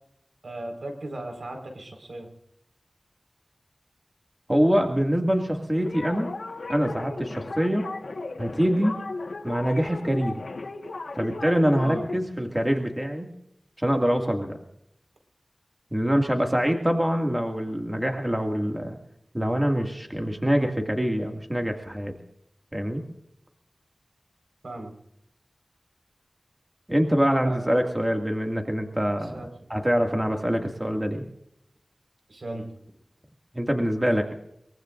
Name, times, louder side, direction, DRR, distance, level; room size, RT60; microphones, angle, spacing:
voice 1, 0.4-2.3 11.8-12.1 24.6-24.9 27.4-27.6 29.2-29.5 32.3-32.7, right 1 dB, 80° right, 3 dB, 4.7 m, -37 dB
voice 2, 4.5-6.3 6.7-7.8 8.4-9.0 9.4-10.3 11.1-13.3 13.8-14.6 15.9-19.0 19.3-22.1 22.7-23.0 26.9-29.4 29.7-31.2 33.5-34.4, equal, 15° right, 3 dB, 2.2 m, -24 dB
sound 1, 5.7-12.2, left 3 dB, 85° left, 1.4 m, -36 dB
23.5 x 23.0 x 2.6 m, 0.77 s
wide cardioid pair, 70°, 0 cm